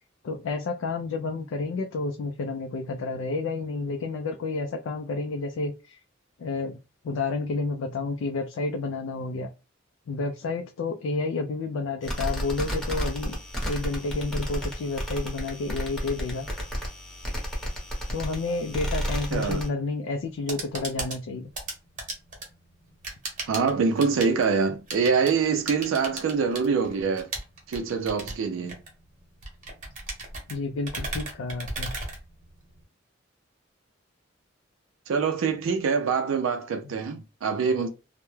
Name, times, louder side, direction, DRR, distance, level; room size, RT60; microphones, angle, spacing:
voice 1, 0.2-6.0 6.4-9.5 10.1-13.4 13.6-16.5 18.1-21.5 30.5-31.9, left 3 dB, 75° left, 0.3 m, -30 dB
sound 1, 12.0-19.7, equal, 5° left, 0.8 m, -32 dB
voice 2, 19.3-19.6 23.5-27.3 27.7-28.8 35.1-37.9, right 5 dB, 90° right, 0.4 m, -25 dB
sound 2, 20.3-32.8, right 2 dB, 40° right, 0.8 m, -37 dB
2.2 x 2.0 x 3.0 m
head